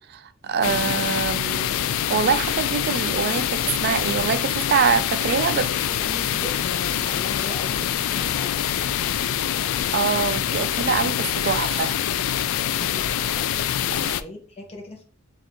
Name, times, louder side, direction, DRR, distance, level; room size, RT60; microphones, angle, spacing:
voice 1, 0.1-1.8 2.1-5.7 9.9-11.9 12.3-12.4, right 6 dB, 50° right, 0.4 m, -24 dB
sound 1, 0.6-14.2, left 10 dB, 80° left, 0.3 m, -25 dB
voice 2, 5.4-9.0 12.6-15.0, left 2 dB, 30° left, 1.0 m, -39 dB
6.3 x 2.6 x 2.9 m
head